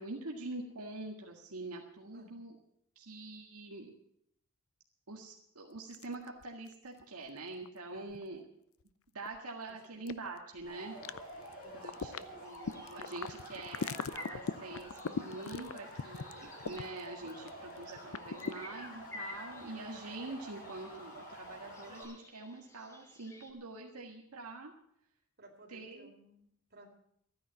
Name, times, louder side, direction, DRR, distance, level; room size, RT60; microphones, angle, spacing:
voice 1, 0.0-2.5 3.0-3.9 5.1-8.4 9.1-11.0 11.7-24.7 25.7-26.1, right 2 dB, 80° right, 0 dB, 1.8 m, -45 dB
sound 1, 5.8-6.7 7.0-7.1 7.6-8.2 8.8-8.9 9.3-9.4 10.1-10.6 11.0-11.5 11.8-17.5 17.8-18.5, left 5 dB, 65° left, 0.6 m, -39 dB
voice 2, 7.9-8.3 9.7-10.1 11.6-12.5 25.4-26.9, right 1 dB, 45° right, 1 dB, 3.7 m, -58 dB
sound 2, 10.6-22.0, equal, 40° left, 7.0 m, -49 dB
sound 3, 12.5-23.5, left 2 dB, 15° left, 1.6 m, -53 dB
14.0 x 9.9 x 8.0 m, 0.72 s
head